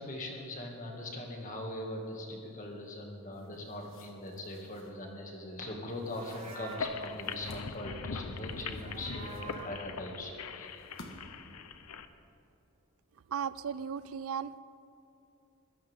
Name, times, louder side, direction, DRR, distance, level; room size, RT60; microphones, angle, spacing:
voice 1, 0.0-10.7, left 1 dB, 35° left, 1 dB, 2.1 m, -41 dB
sound 1, 3.3-5.0 5.9-7.7 8.4-10.0 10.7-11.5, left 2 dB, 60° left, 1.6 m, -55 dB
Livestock farm animals working animals, 6.0-7.0 8.3-9.8, right 4 dB, 30° right, 1.1 m, -48 dB
sound 2, 6.6-12.1, left 4 dB, 90° left, 0.8 m, -41 dB
voice 2, 13.3-14.6, right 7 dB, 75° right, 16 dB, 0.4 m, -36 dB
21.5 x 16.0 x 3.6 m, 2.7 s
head